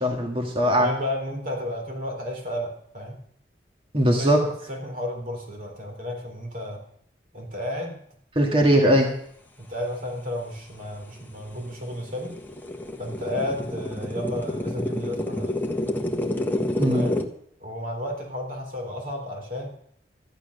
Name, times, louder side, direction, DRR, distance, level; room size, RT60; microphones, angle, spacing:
voice 1, 0.0-0.9 3.9-4.4 8.4-9.1 16.8-17.0, equal, 30° right, 1 dB, 2.0 m, -20 dB
voice 2, 0.8-3.2 4.2-6.8 7.3-8.0 9.6-12.4 13.0-15.6 16.9-17.2 17.6-19.7, left 1 dB, 50° right, 2 dB, 3.9 m, -32 dB
sound 1, 10.7-10.8 11.3-17.2, left 1 dB, 10° left, 1.3 m, -29 dB
13.5 x 11.5 x 6.6 m, 0.67 s
head